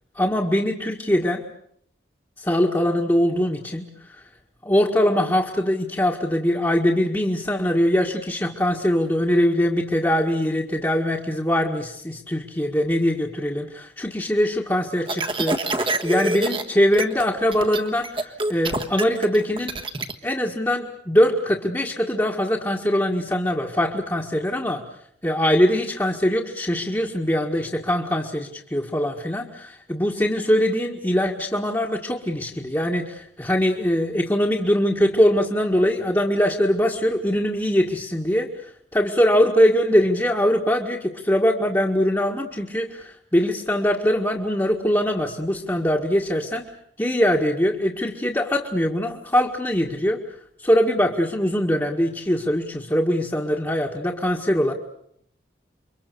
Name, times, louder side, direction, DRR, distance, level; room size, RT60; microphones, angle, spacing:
voice 1, 0.2-1.4 2.4-4.2 4.6-19.8 20.2-24.8 25.2-38.5 38.9-46.7 47.0-50.2 50.6-54.7, equal, 15° left, -2 dB, 1.8 m, -22 dB
sound 1, 15.1-16.6 16.9-17.3 17.5-20.1, right 2 dB, 30° right, 1.5 m, -26 dB
29.0 x 24.0 x 6.9 m, 0.68 s
head